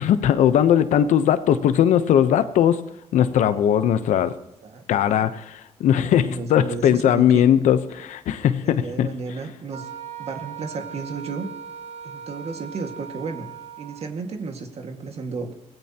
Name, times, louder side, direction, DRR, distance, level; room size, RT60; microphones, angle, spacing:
voice 1, 0.0-2.8 3.1-4.3 4.9-9.1, left 10 dB, 90° left, 12 dB, 0.9 m, -19 dB
voice 2, 4.6-5.3 5.9-7.4 8.6-9.9 10.2-11.5 12.0-13.5 13.8-15.5, right 4 dB, 60° right, 4 dB, 1.9 m, -33 dB
Wind instrument woodwind instrument, 9.7-14.1, right 7 dB, 80° right, 1.7 m, -38 dB
24.5 x 17.5 x 2.9 m, 0.84 s
cardioid pair, 85°, 12 cm